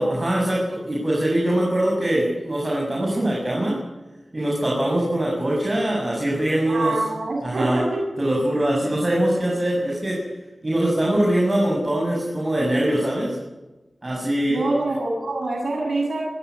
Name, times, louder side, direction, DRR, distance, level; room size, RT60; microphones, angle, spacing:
voice 1, 0.0-3.8 4.3-6.9 7.4-7.8 8.2-10.2 10.6-13.4 14.0-14.7, right 1 dB, 35° right, -3 dB, 7.7 m, -22 dB
voice 2, 6.7-8.0 14.5-16.3, right 2 dB, 85° right, 0 dB, 7.6 m, -25 dB
29.5 x 15.0 x 9.8 m, 1.1 s
wide cardioid pair, 60°, 0 cm